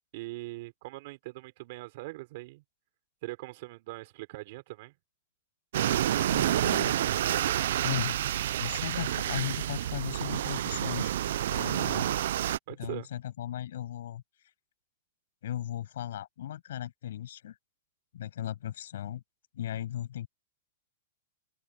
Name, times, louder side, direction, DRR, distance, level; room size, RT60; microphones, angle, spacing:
voice 1, 0.1-2.6 3.2-4.9 12.7-13.1, right 21 dB, 45° right, 4.7 m, -41 dB
sound 1, 5.7-12.6, right 12 dB, 65° right, 0.6 m, -29 dB
voice 2, 6.3-6.9 7.8-8.2 8.6-11.1 11.5-12.0 12.8-14.2 15.4-17.5 18.1-19.2 19.5-20.3, left 11 dB, 70° left, 7.8 m, -36 dB
open air
supercardioid pair, 160°, 0 cm